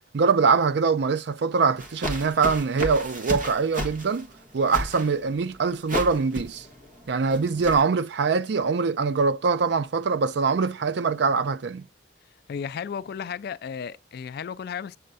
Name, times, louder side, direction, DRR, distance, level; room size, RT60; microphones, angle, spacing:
voice 1, 0.1-4.3 4.5-6.7 7.1-11.9, right 5 dB, 65° right, 0.4 m, -23 dB
sound 1, 1.8-7.8, equal, 50° right, 1.6 m, -34 dB
voice 2, 12.5-15.0, left 7 dB, 60° left, 0.3 m, -34 dB
7.6 x 3.4 x 5.4 m
head